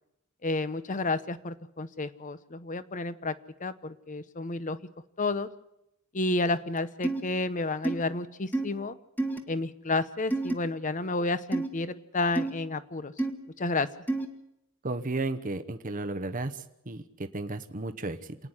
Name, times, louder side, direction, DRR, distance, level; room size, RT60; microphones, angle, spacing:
voice 1, 0.4-3.3 3.6-4.8 5.2-5.5 6.1-9.0 9.5-13.1 13.6-13.9, left 2 dB, 40° left, 14 dB, 0.9 m, -31 dB
sound 1, 7.0-7.2 7.8-8.0 8.5-8.7 9.2-9.4 10.3-10.5 11.5-11.7 12.3-12.5 13.2-13.3 14.1-14.3, right 2 dB, 10° left, 1.5 m, -28 dB
voice 2, 14.8-18.4, right 2 dB, 40° right, 8 dB, 1.0 m, -34 dB
27.5 x 9.7 x 9.8 m, 0.85 s
head